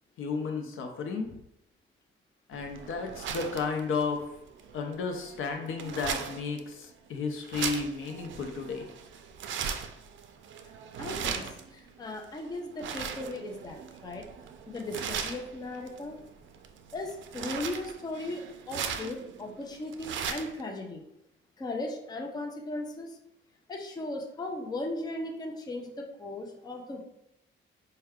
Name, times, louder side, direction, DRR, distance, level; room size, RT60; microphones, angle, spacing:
voice 1, 0.2-1.3 2.5-4.3 4.7-8.9, left 4 dB, 75° left, 4 dB, 0.6 m, -33 dB
sound 1, 2.5-20.6, right 7 dB, 65° right, 0.4 m, -39 dB
voice 2, 11.0-14.3 14.7-16.2 16.9-21.0 21.6-23.2 23.7-27.0, left 2 dB, 20° left, 2 dB, 0.5 m, -37 dB
4.4 x 2.2 x 3.5 m, 0.80 s
cardioid pair, 140°, 21 cm